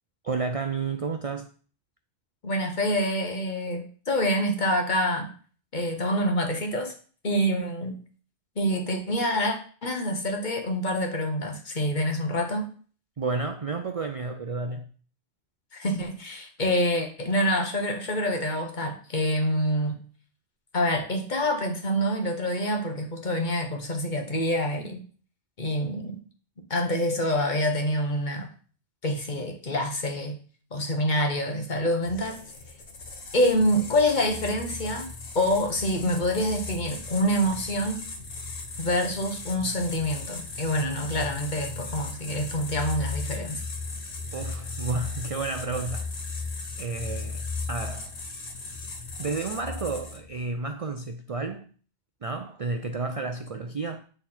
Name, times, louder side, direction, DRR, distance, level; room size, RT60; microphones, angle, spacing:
voice 1, 0.2-1.5 13.2-14.9 44.3-46.1 46.8-48.2 49.2-51.7 52.2-54.0, right 3 dB, 45° right, 0.4 m, -31 dB
voice 2, 2.4-5.3 5.7-6.9 7.2-8.0 8.6-12.7 15.7-20.0 20.7-25.0 25.6-26.2 26.7-28.5 29.0-30.4 30.7-32.4 33.3-35.1 35.3-38.0 38.8-43.6, equal, 45° left, 1.3 m, -26 dB
sound 1, 32.0-50.4, left 3 dB, 70° left, 1.2 m, -37 dB
8.5 x 3.8 x 4.3 m
omnidirectional pair, 1.1 m